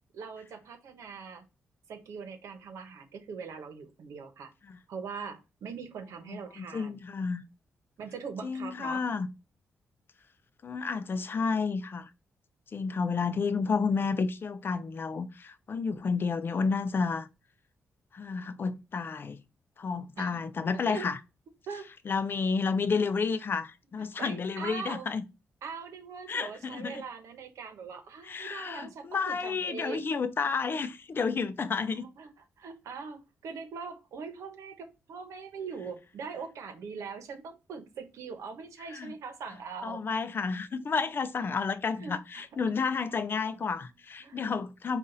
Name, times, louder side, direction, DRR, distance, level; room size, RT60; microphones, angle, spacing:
voice 1, 0.1-1.4 1.9-4.5 4.9-7.0 8.0-9.0 20.2-21.1 21.7-21.9 24.2-25.1 25.6-30.1 31.9-32.3 32.6-40.0 41.4-41.5 42.0-42.7 43.8-43.9 44.2-44.4, right 5 dB, 85° right, 1.0 m, -42 dB
voice 2, 6.3-7.4 8.4-9.3 10.6-12.1 12.7-17.3 18.1-19.4 19.8-21.2 22.1-25.2 26.3-27.0 28.2-32.1 38.9-39.1 39.8-45.0, left 5 dB, 45° left, 0.5 m, -31 dB
5.5 x 2.5 x 3.9 m
cardioid pair, 95°, 5 cm